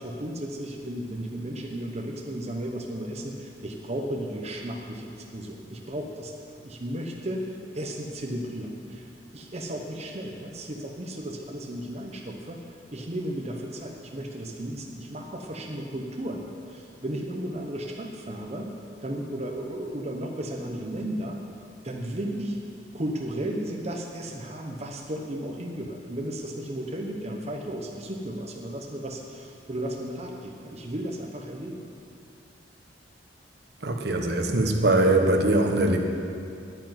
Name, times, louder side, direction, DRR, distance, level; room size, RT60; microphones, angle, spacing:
voice 1, 0.0-18.7 19.0-21.4 21.8-22.6 22.9-31.8, right 1 dB, 35° right, 1 dB, 1.0 m, -34 dB
voice 2, 33.8-36.0, right 2 dB, 65° right, 3 dB, 1.3 m, -22 dB
10.0 x 9.0 x 9.7 m, 2.5 s
head